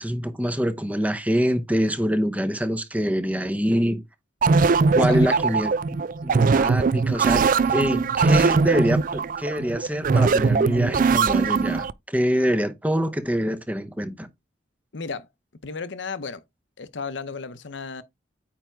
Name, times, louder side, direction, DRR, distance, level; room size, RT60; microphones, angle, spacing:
voice 1, 0.0-4.0 4.9-5.7 6.2-14.3, equal, 10° right, 0.8 m, -25 dB
sound 1, 4.4-11.9, right 4 dB, 45° right, 0.4 m, -20 dB
voice 2, 5.1-5.4 14.9-15.3 15.6-16.4 16.8-18.0, left 4 dB, 65° left, 0.8 m, -34 dB
9.1 x 3.5 x 4.6 m
head